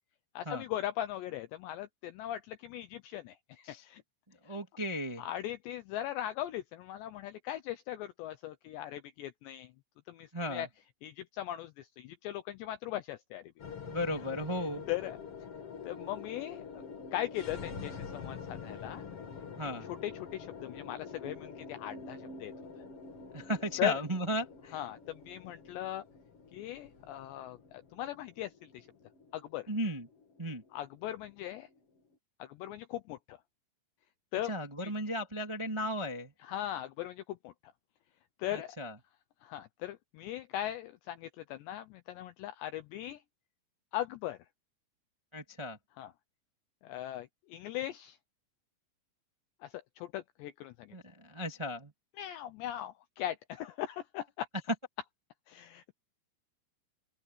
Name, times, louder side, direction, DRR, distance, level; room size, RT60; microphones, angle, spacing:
voice 1, 0.4-4.0 5.2-9.7 10.1-10.7 11.0-13.5 14.9-15.2 15.8-16.8 17.1-19.1 19.9-22.5 23.8-23.9 24.7-26.0 26.5-28.9 29.3-29.7 30.7-31.7 32.4-33.4 34.3-34.5 36.4-37.5 38.4-38.7 39.4-43.2 43.9-44.4 46.0-46.1 46.8-48.2 49.6-51.0 52.2-54.5 55.5-55.9, left 13 dB, 80° left, 2.5 m, -39 dB
voice 2, 4.4-5.3 10.3-10.7 13.8-14.8 19.5-19.9 23.3-24.8 29.7-30.1 30.4-30.6 34.4-36.3 38.5-38.9 45.3-45.8 50.9-51.9, equal, 20° right, 0.8 m, -35 dB
sound 1, 13.6-32.0, left 5 dB, 40° left, 2.3 m, -46 dB
open air
omnidirectional pair, 5.9 m